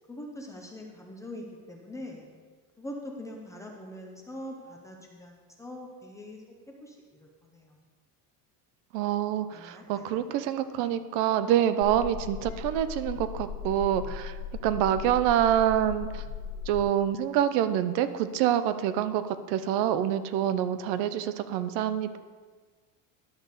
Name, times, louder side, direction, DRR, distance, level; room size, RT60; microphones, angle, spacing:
voice 1, 0.1-2.3 2.8-6.4 6.8-7.7 9.5-10.3, left 1 dB, 10° left, 0 dB, 0.4 m, -43 dB
voice 2, 8.9-14.4 14.6-16.2 16.7-22.2, right 11 dB, 65° right, 12 dB, 0.6 m, -26 dB
sound 1, 11.8-16.8, left 7 dB, 45° left, 1.0 m, -38 dB
11.0 x 6.6 x 4.0 m, 1.5 s
cardioid pair, 180°, 40 cm